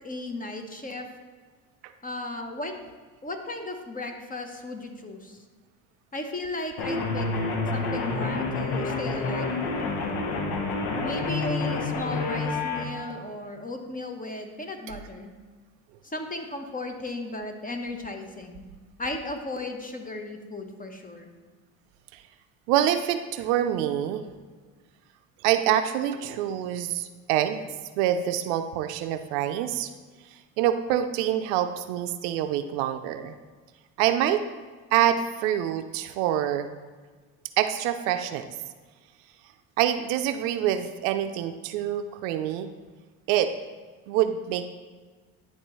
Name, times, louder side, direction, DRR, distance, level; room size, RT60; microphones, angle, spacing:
voice 1, 0.0-1.1 2.0-2.7 3.2-5.4 6.1-7.3 7.7-9.5 11.0-15.3 16.0-18.7 19.0-21.3, left 2 dB, 20° left, 5 dB, 1.0 m, -35 dB
sound 1, 6.8-12.8, left 3 dB, 65° left, 1.3 m, -28 dB
voice 2, 22.7-24.2 25.4-27.6 28.0-29.9 30.6-33.3 34.0-34.4 34.9-36.7 37.6-38.5 39.8-42.7 43.3-43.5 44.1-44.6, right 11 dB, 70° right, 9 dB, 0.6 m, -26 dB
11.0 x 3.8 x 3.1 m, 1.4 s
hypercardioid pair, 65°, 42 cm